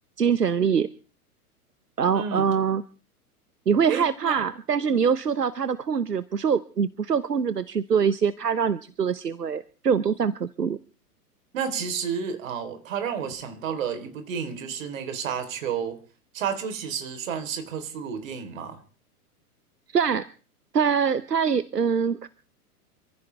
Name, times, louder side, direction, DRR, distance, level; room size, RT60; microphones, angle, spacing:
voice 1, 0.2-0.9 2.0-2.8 3.7-10.8 19.9-20.3 20.7-22.3, right 6 dB, 90° right, 17 dB, 0.8 m, -24 dB
voice 2, 2.1-2.5 3.9-4.4 11.5-16.0 16.3-18.8, right 7 dB, 55° right, 8 dB, 3.8 m, -31 dB
27.0 x 15.0 x 3.4 m, 0.38 s
figure-of-eight pair, 100°, 46 cm